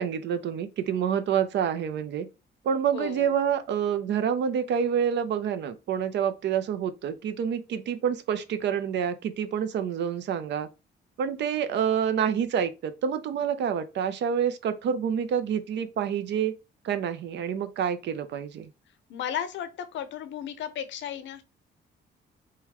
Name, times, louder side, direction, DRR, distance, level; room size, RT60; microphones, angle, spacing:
voice 1, 0.0-2.3 2.6-10.7 11.2-16.5 16.8-18.7, right 8 dB, 65° right, 0.4 m, -27 dB
voice 2, 2.9-3.3 19.1-21.4, left 9 dB, 70° left, 0.6 m, -34 dB
3.7 x 2.2 x 2.9 m
cardioid pair, 90°, 20 cm